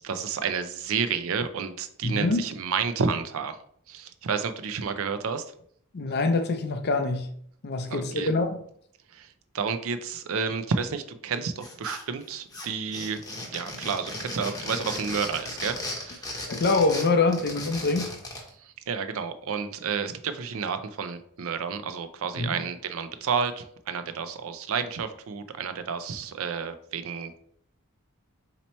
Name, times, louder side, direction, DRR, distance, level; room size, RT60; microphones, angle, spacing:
voice 1, 0.0-3.6 3.9-5.5 7.9-8.3 9.1-16.3 18.6-27.4, right 5 dB, 65° right, 0.5 m, -31 dB
voice 2, 2.0-2.4 5.9-7.3 7.6-8.6 16.5-18.1 22.4-22.6, left 3 dB, 50° left, 0.6 m, -25 dB
sound 1, 11.6-12.2 12.5-18.5, left 1 dB, 15° left, 0.8 m, -36 dB
4.1 x 2.9 x 4.3 m
head